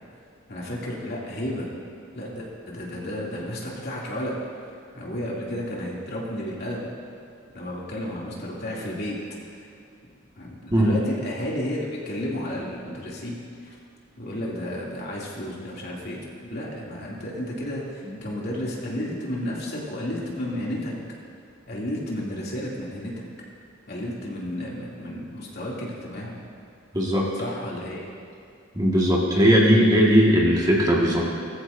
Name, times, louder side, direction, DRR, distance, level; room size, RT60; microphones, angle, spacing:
voice 1, 0.5-1.7 2.1-4.4 4.9-6.9 7.5-9.2 10.4-13.4 13.6-13.8 14.2-20.9 21.6-23.1 23.9-26.3 27.3-28.1, left 1 dB, 50° left, -5 dB, 2.7 m, -32 dB
voice 2, 26.9-27.3 28.8-31.2, equal, 20° right, -4 dB, 1.7 m, -18 dB
19.5 x 14.5 x 2.7 m, 2.4 s
head